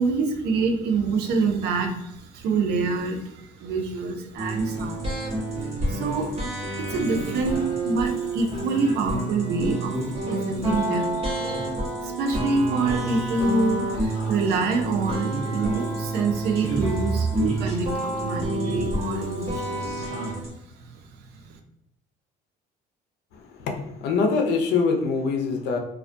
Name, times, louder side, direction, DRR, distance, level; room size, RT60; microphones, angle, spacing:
voice 1, 0.0-5.1 5.9-10.0 10.3-11.7 12.0-20.1 20.8-21.0 21.4-21.6, right 4 dB, 75° right, 5 dB, 0.4 m, -26 dB
sound 1, 4.4-20.5, right 1 dB, 35° right, 1.0 m, -29 dB
voice 2, 23.3-25.8, left 4 dB, 80° left, 4 dB, 0.5 m, -24 dB
2.3 x 2.1 x 2.5 m, 0.82 s
cardioid pair, 110°, 17 cm